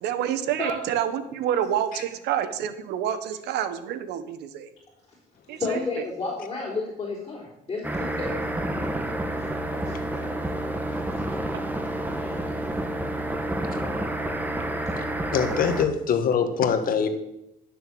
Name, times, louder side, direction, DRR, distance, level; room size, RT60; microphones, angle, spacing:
voice 1, 0.0-4.7 5.5-6.1 11.5-11.6 15.4-15.6, right 10 dB, 85° right, 11 dB, 1.2 m, -28 dB
voice 2, 5.6-8.6 9.7-10.3 12.1-12.4 15.6-15.7, left 3 dB, 25° left, -6 dB, 4.0 m, -32 dB
sound 1, 7.8-15.8, right 1 dB, 10° right, 1.4 m, -29 dB
voice 3, 15.3-17.1, left 7 dB, 55° left, 8 dB, 1.7 m, -23 dB
12.0 x 6.7 x 7.8 m, 0.86 s
cardioid pair, 110°, 17 cm